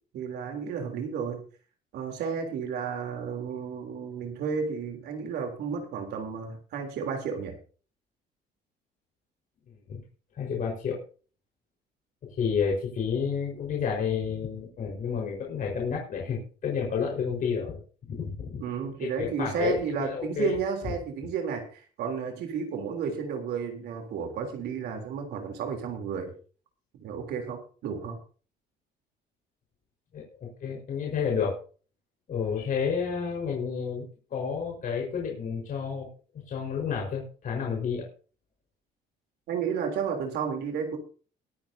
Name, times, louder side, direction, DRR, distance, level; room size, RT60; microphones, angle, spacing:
voice 1, 0.1-1.4 1.9-7.5 18.6-26.3 27.0-28.2 39.5-41.0, right 6 dB, 75° right, 4 dB, 3.4 m, -32 dB
voice 2, 9.7-10.0 10.4-11.0 12.2-17.8 18.1-18.6 19.0-20.5 30.1-31.6 32.3-36.1 36.5-38.1, left 6 dB, 55° left, -1 dB, 4.8 m, -30 dB
22.0 x 9.3 x 2.8 m, 0.38 s
cardioid pair, 110°, 17 cm